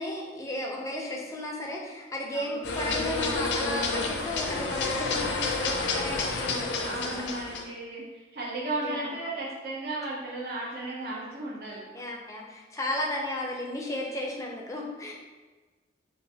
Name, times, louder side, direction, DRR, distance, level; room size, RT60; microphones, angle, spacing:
voice 1, 0.0-7.2 8.8-9.1 11.9-15.1, left 1 dB, 15° left, -1 dB, 0.5 m, -34 dB
sound 1, 2.6-7.6, left 3 dB, 75° left, 0.5 m, -29 dB
voice 2, 6.8-11.9, right 2 dB, 55° right, -6 dB, 0.6 m, -35 dB
4.7 x 2.4 x 2.7 m, 1.3 s
head